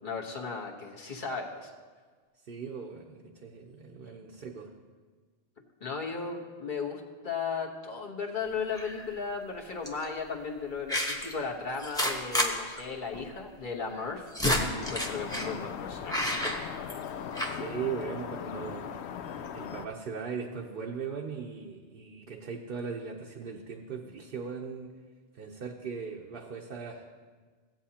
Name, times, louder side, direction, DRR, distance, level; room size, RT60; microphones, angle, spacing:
voice 1, 0.0-1.7 5.8-14.3 14.6-16.3, left 5 dB, 50° left, -1 dB, 1.2 m, -36 dB
voice 2, 2.5-4.7 17.5-18.9 19.5-24.9 25.3-27.1, right 6 dB, 55° right, 0 dB, 0.9 m, -38 dB
sound 1, 8.7-9.1 9.9-10.0 10.9-11.3 11.8-12.5 12.8-12.9 13.1-13.2 14.0-15.5 16.1-17.1 17.3-17.6, equal, 5° left, 0.9 m, -30 dB
sound 2, 14.8-19.9, left 8 dB, 75° left, 0.8 m, -39 dB
16.0 x 8.7 x 2.8 m, 1.5 s
omnidirectional pair, 1.1 m